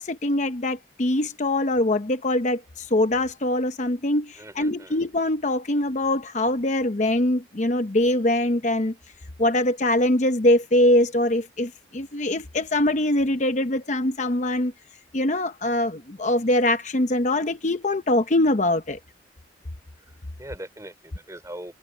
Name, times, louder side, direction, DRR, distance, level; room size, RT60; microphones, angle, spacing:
voice 1, 0.0-8.9 9.4-14.7 15.1-19.0, left 1 dB, 40° left, 0.8 m, -23 dB
voice 2, 4.4-5.0 20.0-21.7, right 1 dB, 15° right, 5.0 m, -41 dB
head